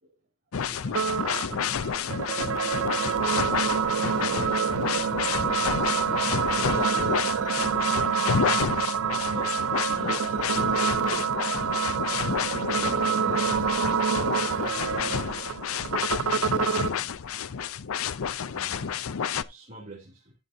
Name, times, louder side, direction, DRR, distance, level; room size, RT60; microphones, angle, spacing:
sound 1, 0.5-19.4, left 7 dB, 80° left, 0.5 m, -30 dB
voice 1, 0.6-1.9 6.5-7.2 7.7-8.7 9.0-9.6 9.9-11.1 14.3-15.6 16.0-17.0 18.5-19.1 19.5-20.3, right 2 dB, 40° right, 2.8 m, -45 dB
sound 2, 0.9-16.9, right 7 dB, 75° right, 0.5 m, -27 dB
14.0 x 6.8 x 2.7 m
head